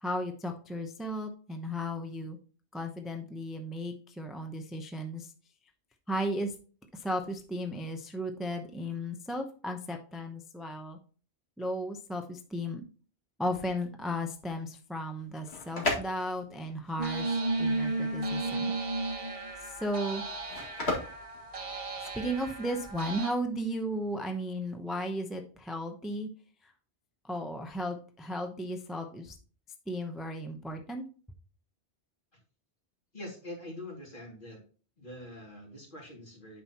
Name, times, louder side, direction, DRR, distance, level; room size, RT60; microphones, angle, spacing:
voice 1, 0.0-2.4 2.7-5.3 6.1-6.5 6.9-11.0 11.6-12.8 13.4-18.7 19.6-20.2 22.1-26.3 26.6-26.7 27.2-29.3 29.9-31.0, equal, ahead, 4 dB, 0.6 m, -35 dB
sound 1, 15.2-22.3, left 2 dB, 75° left, 2.3 m, -37 dB
sound 2, 17.0-23.3, right 2 dB, 35° right, 0.9 m, -34 dB
voice 2, 33.1-34.6 35.0-36.6, left 1 dB, 50° left, -1 dB, 2.6 m, -44 dB
9.2 x 5.9 x 2.9 m, 0.39 s
omnidirectional pair, 1.1 m